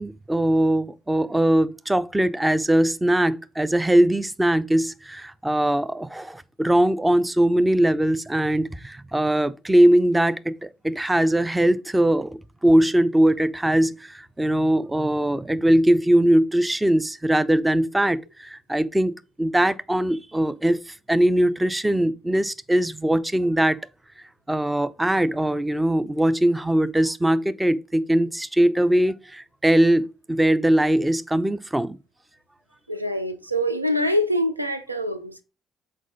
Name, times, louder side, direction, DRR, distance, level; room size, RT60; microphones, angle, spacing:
voice 1, 0.0-23.8 24.5-32.0, right 1 dB, 10° right, 0.5 m, -21 dB
voice 2, 32.9-35.4, equal, 90° right, 0.4 m, -25 dB
6.2 x 4.4 x 3.8 m
figure-of-eight pair, 45°, 0 cm